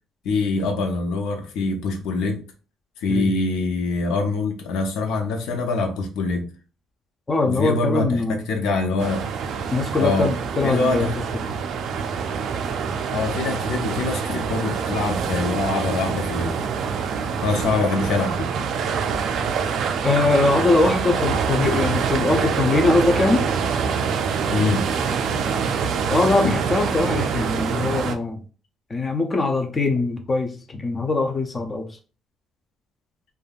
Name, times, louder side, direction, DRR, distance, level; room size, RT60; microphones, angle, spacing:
voice 1, 0.2-2.4 3.0-6.5 7.4-9.3 10.0-10.3 10.6-11.1 13.1-16.6 17.4-18.5 24.5-24.9 26.4-26.6, left 3 dB, 85° left, 0.6 m, -24 dB
voice 2, 7.3-8.4 9.7-11.1 11.4-11.6 20.0-23.5 26.1-28.4 28.9-31.9, left 3 dB, 20° left, 0.4 m, -22 dB
sound 1, 9.0-28.2, right 6 dB, 55° right, 0.3 m, -25 dB
3.3 x 2.2 x 2.3 m
cardioid pair, 165°, 0 cm